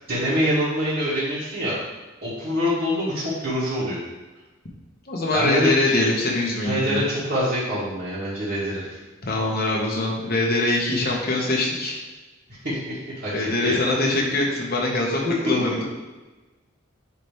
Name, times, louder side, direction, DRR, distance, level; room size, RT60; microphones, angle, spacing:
voice 1, 0.1-1.7 2.2-4.0 5.3-5.9 6.6-9.0 12.5-13.8 15.4-15.7, equal, 55° right, -13 dB, 2.0 m, -25 dB
voice 2, 5.1-7.0 9.2-12.0 13.3-15.8, left 2 dB, 50° left, -2 dB, 1.4 m, -23 dB
9.9 x 3.5 x 3.4 m, 1.2 s
head